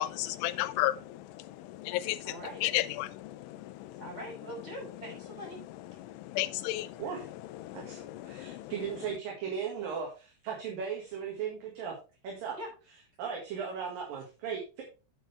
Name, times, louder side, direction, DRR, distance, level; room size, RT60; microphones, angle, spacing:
voice 1, 0.0-4.1 6.0-8.9, left 15 dB, 85° left, 3.0 m, -34 dB
voice 2, 2.2-2.6 4.0-5.6 12.6-12.7, equal, 15° right, 5.2 m, -42 dB
voice 3, 7.0-7.3 7.7-11.9 12.2-12.6 13.2-14.8, right 7 dB, 55° right, 3.1 m, -37 dB
9.1 x 8.8 x 3.4 m
omnidirectional pair, 5.6 m